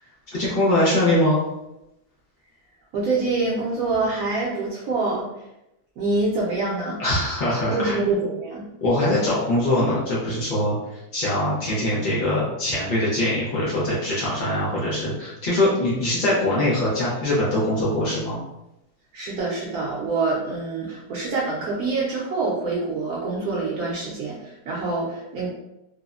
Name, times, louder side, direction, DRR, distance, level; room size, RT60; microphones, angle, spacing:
voice 1, 0.3-1.5 7.0-8.1 8.8-18.4, left 1 dB, 75° left, -7 dB, 0.4 m, -22 dB
voice 2, 2.9-5.3 6.0-7.0 7.7-8.6 19.1-25.5, right 3 dB, 70° right, -5 dB, 1.0 m, -26 dB
3.3 x 2.0 x 2.4 m, 0.89 s
omnidirectional pair, 1.7 m